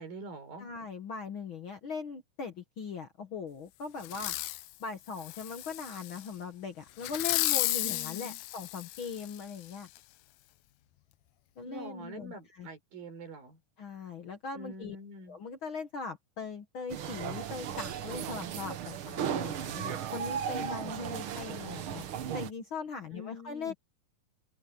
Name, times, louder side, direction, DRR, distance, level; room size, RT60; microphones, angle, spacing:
voice 1, 0.0-0.7 7.8-8.4 11.6-13.6 14.5-15.4 23.1-23.7, right 1 dB, 90° right, 6.1 m, -45 dB
voice 2, 0.6-4.3 4.8-9.9 11.6-12.7 13.8-15.0 15.3-22.0 22.3-23.7, left 5 dB, 55° left, 1.5 m, -40 dB
Fireworks, 4.0-4.7 5.2-6.2 7.0-9.4 10.0-10.1, left 17 dB, 80° left, 1.7 m, -33 dB
sound 1, 16.9-22.5, right 9 dB, 70° right, 1.2 m, -36 dB
open air
omnidirectional pair, 4.0 m